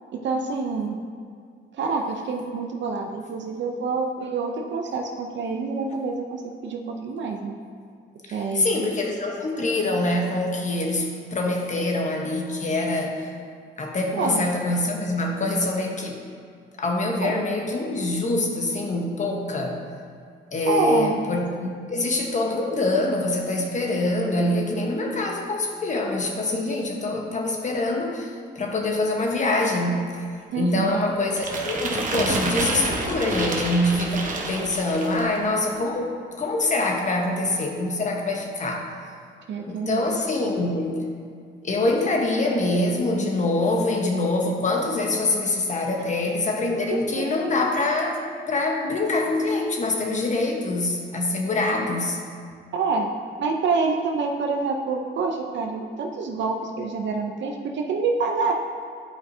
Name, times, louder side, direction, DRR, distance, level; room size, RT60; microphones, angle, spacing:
voice 1, 0.1-1.0 1.7-7.6 8.3-8.9 14.1-14.4 17.2-17.4 20.6-21.2 30.5-31.0 39.5-40.2 46.9-47.2 52.7-58.5, right 4 dB, 65° right, 2 dB, 0.7 m, -27 dB
voice 2, 8.3-13.3 13.8-16.2 16.8-19.8 20.5-30.1 30.5-36.1 36.4-38.9 39.7-41.0 41.6-52.2, left 2 dB, 35° left, 1 dB, 1.1 m, -25 dB
sound 1, 31.4-35.4, right 3 dB, 40° right, 1.0 m, -28 dB
11.0 x 4.8 x 2.7 m, 2.2 s
cardioid pair, 90°, 20 cm